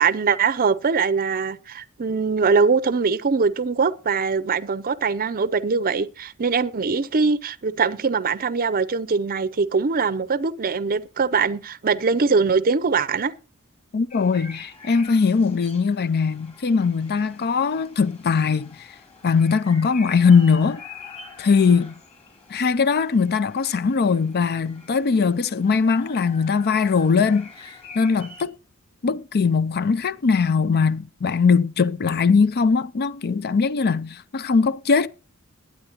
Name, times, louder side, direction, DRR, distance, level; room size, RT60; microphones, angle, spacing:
voice 1, 0.0-13.3, right 5 dB, 40° right, 0.6 m, -22 dB
voice 2, 13.9-18.9 19.2-20.8 21.4-21.9 22.5-27.7 27.9-28.5 29.0-35.1, left 5 dB, 45° left, 0.5 m, -20 dB
sound 1, 14.1-28.4, left 4 dB, 30° left, 3.3 m, -45 dB
21.0 x 8.7 x 2.9 m
head